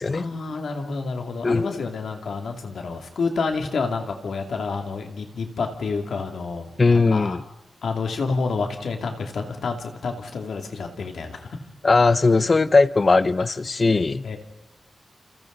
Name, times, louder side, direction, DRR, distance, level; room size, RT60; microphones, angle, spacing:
voice 1, 0.1-6.7 7.1-7.4 7.8-11.6 14.2-14.4, left 4 dB, 80° left, 4 dB, 2.6 m, -29 dB
voice 2, 1.4-1.8 6.8-7.4 11.8-14.2, left 3 dB, 35° left, 16 dB, 0.7 m, -19 dB
29.5 x 28.0 x 4.0 m, 0.90 s
wide cardioid pair, 115°, 0 cm